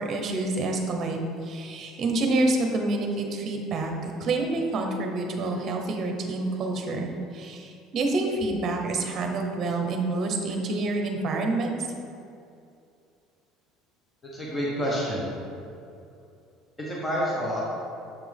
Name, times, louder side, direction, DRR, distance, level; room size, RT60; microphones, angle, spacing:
voice 1, 0.0-11.8, right 2 dB, 40° right, 3 dB, 1.0 m, -28 dB
voice 2, 14.2-15.3 16.8-17.6, equal, 15° left, -6 dB, 1.3 m, -28 dB
7.2 x 6.0 x 3.6 m, 2.5 s
cardioid pair, 145°, 0 cm